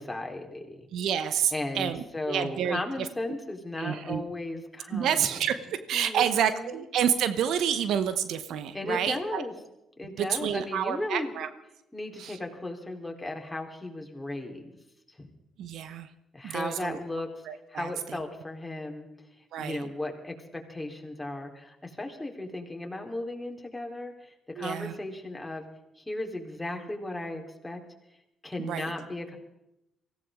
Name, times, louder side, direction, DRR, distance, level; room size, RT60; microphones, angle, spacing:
voice 1, 0.1-0.8 1.5-5.2 5.9-6.8 8.7-9.5 10.0-11.3 11.9-14.7 15.1-15.3 16.3-17.4 17.7-19.1 19.6-25.7 26.0-27.8 28.4-29.4, left 2 dB, 15° left, 1 dB, 3.7 m, -36 dB
voice 2, 0.9-3.1 3.8-4.2 4.9-9.4 10.2-11.5 12.2-12.4 15.6-16.1 16.4-17.0 17.5-18.2 19.5-19.9 24.5-24.9 28.6-28.9, right 9 dB, 70° right, 12 dB, 1.0 m, -29 dB
24.0 x 16.0 x 3.7 m, 0.88 s
hypercardioid pair, 45°, 0 cm